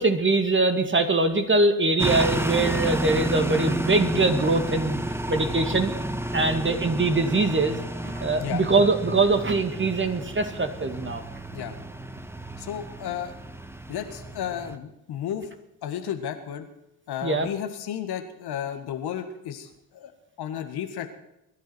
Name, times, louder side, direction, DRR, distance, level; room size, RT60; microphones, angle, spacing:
voice 1, 0.0-5.0 5.3-5.9 6.3-11.2 17.2-17.5, right 3 dB, 25° right, 6 dB, 2.4 m, -23 dB
sound 1, 2.0-14.8, right 1 dB, 5° right, 1.4 m, -31 dB
voice 2, 12.6-13.4 13.9-15.5 15.8-16.7 17.1-20.1 20.4-21.1, left 9 dB, 60° left, 8 dB, 1.8 m, -33 dB
22.5 x 12.5 x 4.6 m, 0.87 s
hypercardioid pair, 45°, 43 cm